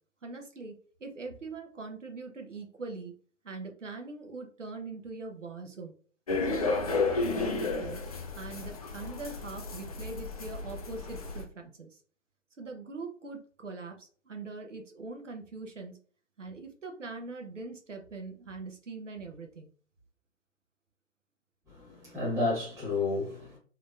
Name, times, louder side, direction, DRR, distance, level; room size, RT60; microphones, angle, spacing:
voice 1, 0.2-3.1 3.4-5.9 6.5-8.0 8.3-12.0 12.6-16.0 16.4-19.7, right 3 dB, 80° right, 1.0 m, -42 dB
sound 1, 6.3-11.4, left 3 dB, 30° left, 0.5 m, -32 dB
voice 2, 21.7-23.6, left 3 dB, 10° right, 1.3 m, -31 dB
3.7 x 3.0 x 2.5 m
figure-of-eight pair, 135°, 37 cm